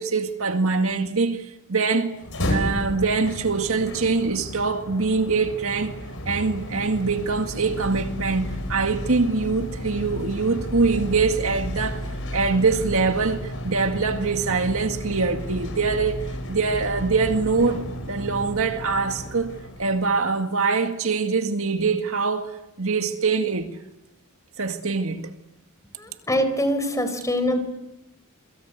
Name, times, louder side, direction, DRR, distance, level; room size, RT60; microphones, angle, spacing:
voice 1, 0.0-2.2 2.5-5.9 6.3-12.0 12.3-23.7 24.6-25.3, right 4 dB, 70° right, 2.1 m, -24 dB
sound 1, 2.1-20.3, equal, 65° left, 5.7 m, -33 dB
voice 2, 26.0-27.6, equal, 15° left, 4.4 m, -24 dB
28.0 x 23.5 x 8.2 m
head